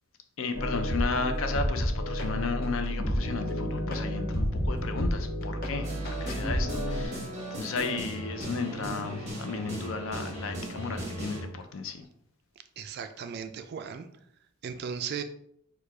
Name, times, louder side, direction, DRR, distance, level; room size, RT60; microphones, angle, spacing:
voice 1, 0.4-12.1, left 4 dB, 65° left, 0.5 m, -34 dB
sound 1, 0.5-7.0, equal, 45° left, 0.9 m, -30 dB
sound 2, 5.8-11.4, right 1 dB, 30° right, 1.4 m, -37 dB
voice 2, 12.8-14.1 14.6-15.2, right 7 dB, 50° right, 0.3 m, -36 dB
4.6 x 2.3 x 4.7 m
head